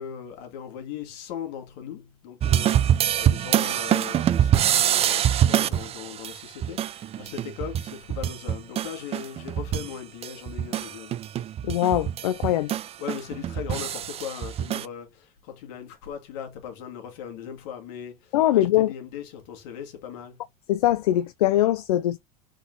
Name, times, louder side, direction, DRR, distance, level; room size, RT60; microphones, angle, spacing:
voice 1, 0.0-11.2 13.0-20.5, left 9 dB, 65° left, 1.9 m, -39 dB
sound 1, 2.4-9.9 10.2-14.8, right 10 dB, 35° right, 0.4 m, -25 dB
voice 2, 11.6-12.7 18.3-18.9 20.7-22.2, left 13 dB, 85° left, 0.4 m, -22 dB
3.8 x 3.7 x 3.8 m
hypercardioid pair, 90°, 19 cm